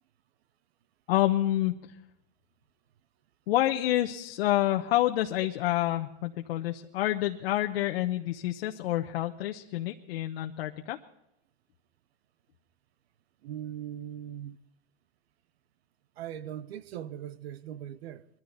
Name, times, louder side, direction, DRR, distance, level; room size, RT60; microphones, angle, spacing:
voice 1, 1.1-1.9 3.5-11.0, left 14 dB, 70° left, 1.1 m, -28 dB
voice 2, 13.4-14.6 16.2-18.3, right 10 dB, 70° right, 1.1 m, -40 dB
22.0 x 14.0 x 4.1 m
supercardioid pair, 155°, 32 cm